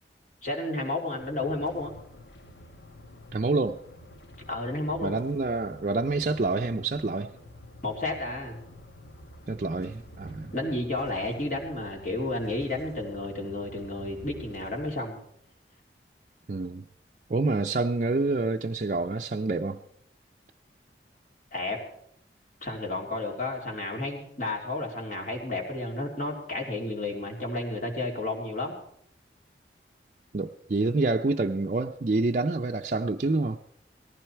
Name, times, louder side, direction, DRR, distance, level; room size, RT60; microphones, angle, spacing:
voice 1, 0.4-1.9 4.5-5.2 7.8-8.6 10.5-15.2 21.5-21.8 22.6-28.8, left 2 dB, 45° left, 3.1 m, -32 dB
sound 1, 1.2-14.9, left 1 dB, 75° left, 1.1 m, -49 dB
voice 2, 3.3-3.8 5.0-7.3 9.5-10.5 16.5-16.8 17.3-19.8 30.3-33.6, right 3 dB, 45° right, 0.5 m, -27 dB
18.0 x 15.0 x 4.5 m
head